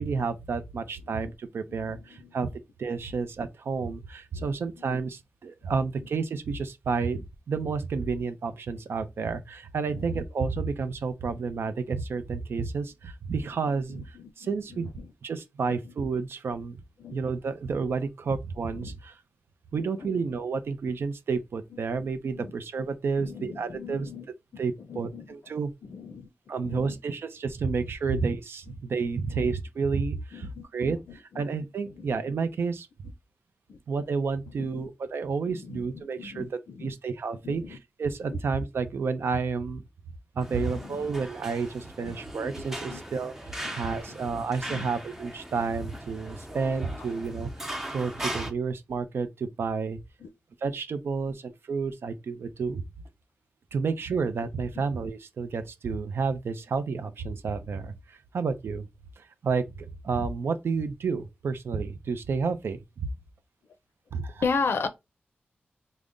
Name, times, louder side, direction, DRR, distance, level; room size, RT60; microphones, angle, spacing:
voice 1, 0.0-2.5 2.8-14.9 15.2-16.8 17.1-19.2 19.7-24.1 24.6-25.7 26.5-32.9 33.9-39.8 40.4-50.0 50.6-52.8 53.7-58.9 59.2-63.1 64.1-64.4, right 5 dB, 85° right, 0.4 m, -30 dB
voice 2, 1.7-2.3 4.4-4.6 9.9-10.1 13.5-13.6 13.9-15.1 17.0-17.2 18.8-19.0 19.8-20.2 22.4-22.5 23.2-24.3 24.9-25.3 25.8-26.3 26.6-27.0 28.1-28.2 30.3-31.4 31.9-32.1 33.7-33.8 34.6-34.9 35.5-36.9 37.4-37.8 40.6-41.1 42.0-42.1 42.6-42.7 42.9-43.0 43.6-43.8 44.1-44.2 44.7-44.9 48.4-48.5 50.2-50.3 64.4-64.9, left 5 dB, 80° left, 0.4 m, -37 dB
sound 1, 40.4-48.5, right 1 dB, 10° right, 0.7 m, -39 dB
3.7 x 2.0 x 3.5 m
wide cardioid pair, 80°, 4 cm